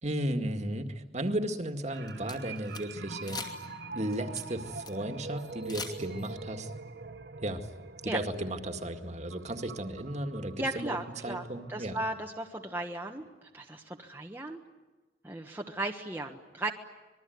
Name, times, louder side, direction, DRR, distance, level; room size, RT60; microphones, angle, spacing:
voice 1, 0.0-3.5 3.9-6.7 7.4-7.7 8.0-11.0 11.2-12.0, right 1 dB, 35° right, 7 dB, 2.0 m, -34 dB
sound 1, 1.8-2.8 3.2-3.7 4.0-4.9 5.4-6.3, left 4 dB, 20° left, 2.7 m, -42 dB
sound 2, 1.9-12.7 13.0-13.2, right 3 dB, 60° right, 1.3 m, -45 dB
voice 2, 10.6-14.6 15.2-16.7, right 2 dB, 10° right, 1 dB, 1.3 m, -36 dB
26.0 x 21.5 x 9.4 m, 1.2 s
head